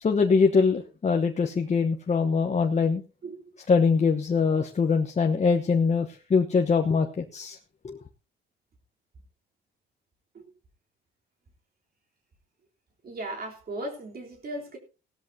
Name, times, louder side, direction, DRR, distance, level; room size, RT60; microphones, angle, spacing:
voice 1, 0.0-3.0 3.7-7.6 7.8-8.0, left 5 dB, 35° left, 3 dB, 1.1 m, -23 dB
voice 2, 3.2-3.5 10.3-10.4 13.0-14.8, right 1 dB, 50° right, 0 dB, 3.6 m, -37 dB
17.0 x 13.0 x 2.8 m, 0.32 s
cardioid pair, 90°, 20 cm